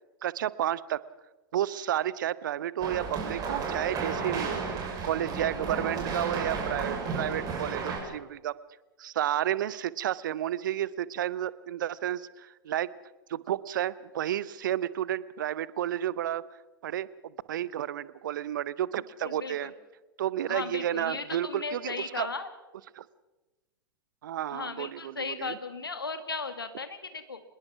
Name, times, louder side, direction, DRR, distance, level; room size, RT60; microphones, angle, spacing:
voice 1, 0.2-1.0 1.5-4.6 5.0-8.5 9.0-12.9 13.3-16.4 16.8-19.7 20.2-22.3 23.0-23.1 24.2-25.6, right 11 dB, 60° right, 19 dB, 0.9 m, -31 dB
sound 1, 2.8-8.0, right 4 dB, 30° right, 6.7 m, -33 dB
voice 2, 19.2-19.7 20.5-22.5 24.5-27.4, left 4 dB, 80° left, 9 dB, 2.2 m, -36 dB
26.0 x 21.0 x 6.0 m, 1.1 s
figure-of-eight pair, 95°, 12 cm